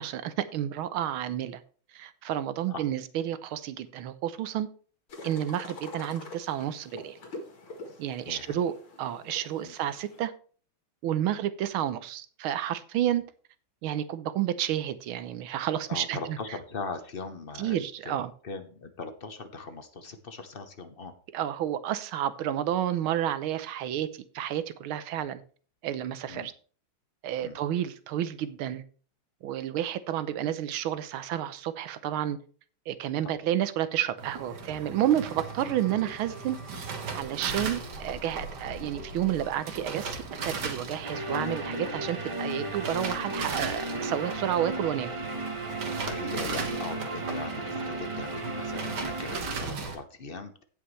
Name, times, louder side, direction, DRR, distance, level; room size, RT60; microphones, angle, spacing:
voice 1, 0.0-1.6 1.9-4.7 5.2-7.2 8.0-10.3 11.0-13.2 13.8-16.4 17.6-18.3 21.3-25.4 25.8-26.5 27.2-28.8 29.4-32.4 32.9-36.6 37.1-40.2 40.4-45.1, right 11 dB, 85° right, 13 dB, 1.6 m, -30 dB
sound 1, 5.1-10.2, left 2 dB, 75° left, 2.6 m, -45 dB
voice 2, 8.2-8.6 9.6-9.7 11.2-11.4 15.9-18.2 18.4-21.1 25.1-25.2 26.3-26.5 27.4-27.6 33.2-33.3 35.6-35.8 46.0-50.6, left 4 dB, 50° left, 8 dB, 0.7 m, -40 dB
sound 2, 34.2-50.0, right 4 dB, 55° right, 1.9 m, -37 dB
sound 3, 41.0-49.4, right 2 dB, 35° right, 0.5 m, -35 dB
16.5 x 5.7 x 3.2 m, 0.42 s
omnidirectional pair, 2.2 m